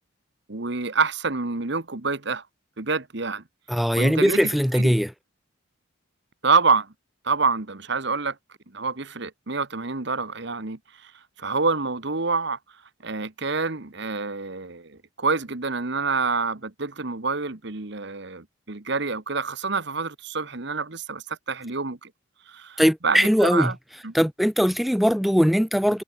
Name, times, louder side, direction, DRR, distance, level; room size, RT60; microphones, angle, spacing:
voice 1, 0.5-2.4 2.8-3.4 3.9-4.9 6.4-6.9 7.2-8.4 8.7-11.1 11.4-12.6 13.0-22.1 22.5-23.8 24.0-24.1, right 4 dB, 55° right, 1.4 m, -27 dB
voice 2, 3.7-5.1 22.8-23.7 24.1-26.0, equal, ahead, 0.7 m, -20 dB
head